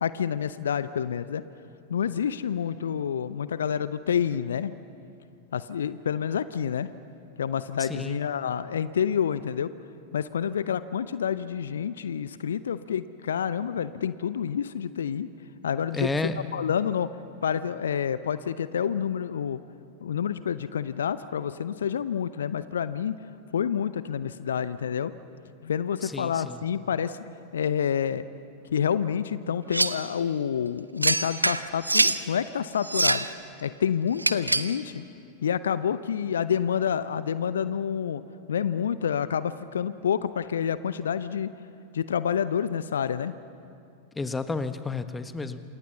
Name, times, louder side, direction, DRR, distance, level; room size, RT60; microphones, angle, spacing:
voice 1, 0.0-1.4 1.9-4.7 5.5-6.9 7.4-9.7 10.1-15.3 15.6-16.1 16.5-17.1 17.4-19.6 20.0-23.1 23.5-25.1 25.6-27.2 27.5-28.3 28.7-33.2 33.6-35.0 35.4-38.2 38.5-41.5 41.9-43.3, left 8 dB, 65° left, 15 dB, 0.7 m, -28 dB
voice 2, 7.8-8.2 15.9-16.4 26.0-26.6 44.1-45.6, left 3 dB, 10° left, 10 dB, 1.4 m, -31 dB
sound 1, 29.7-30.1 31.0-32.2 32.8-33.3 34.2-34.8, right 2 dB, 85° right, 0.8 m, -24 dB
28.5 x 27.5 x 7.0 m, 2.5 s
figure-of-eight pair, 90°, 0 cm